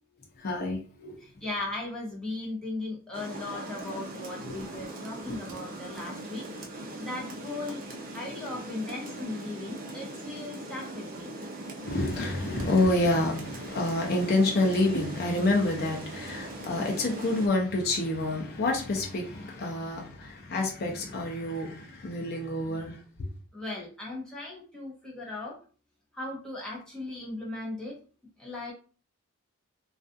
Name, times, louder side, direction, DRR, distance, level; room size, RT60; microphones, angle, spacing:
voice 1, 0.4-1.2 11.8-23.0, left 2 dB, 45° left, 0.5 m, -28 dB
voice 2, 1.2-6.4 7.0-7.8 8.1-11.3 23.5-25.6 26.2-28.0 28.4-28.7, left 2 dB, 5° left, 0.7 m, -37 dB
Rain, 3.1-17.5, right 2 dB, 40° right, 0.4 m, -40 dB
2.3 x 2.3 x 2.5 m
head